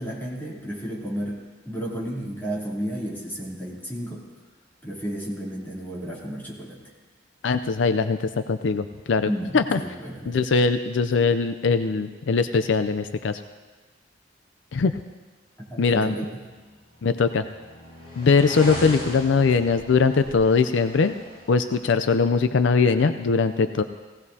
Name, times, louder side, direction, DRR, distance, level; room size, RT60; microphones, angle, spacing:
voice 1, 0.0-1.4 1.6-4.2 4.8-6.8 9.2-10.4 15.6-16.4, equal, 10° left, -6 dB, 3.2 m, -32 dB
voice 2, 7.4-9.8 10.3-13.4 14.7-14.9 15.8-16.1 17.0-17.4 18.2-21.2 21.5-23.8, left 4 dB, 75° left, 10 dB, 0.5 m, -21 dB
sound 1, 16.8-21.8, left 1 dB, 35° left, 5.4 m, -38 dB
18.5 x 17.0 x 2.8 m, 1.3 s
head